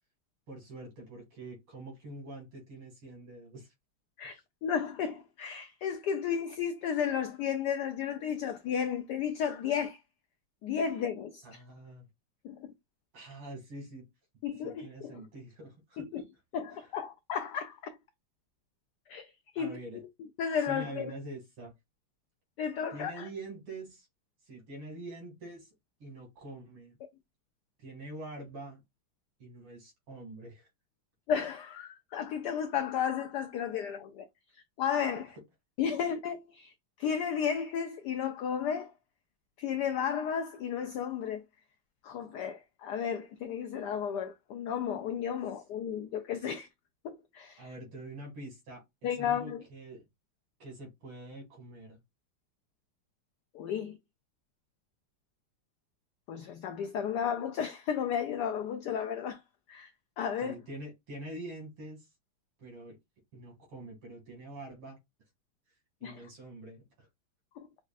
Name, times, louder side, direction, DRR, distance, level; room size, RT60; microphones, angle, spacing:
voice 1, 0.5-3.7 4.3-4.4 11.4-12.1 13.1-14.1 14.6-16.1 16.8-16.9 19.5-20.0 20.6-21.7 22.9-24.1 24.4-25.7 26.0-27.0 27.8-28.8 29.4-30.7 47.6-50.1 50.6-52.0 60.4-62.1 62.6-63.0 63.3-65.0 66.0-67.1, right 2 dB, 85° right, 3.0 m, -45 dB
voice 2, 4.2-10.0 10.6-11.6 12.4-12.7 14.4-15.1 16.0-16.2 16.5-18.0 19.1-19.8 20.4-21.1 22.6-23.3 31.3-34.3 34.5-35.3 35.8-36.7 37.0-38.9 39.6-41.4 42.0-46.7 47.0-47.6 49.0-49.6 53.5-54.0 56.3-59.4 59.7-59.9 60.2-60.6 66.0-66.2 67.6-67.7, left 8 dB, 85° left, 0.9 m, -33 dB
6.2 x 2.3 x 2.4 m
omnidirectional pair, 2.3 m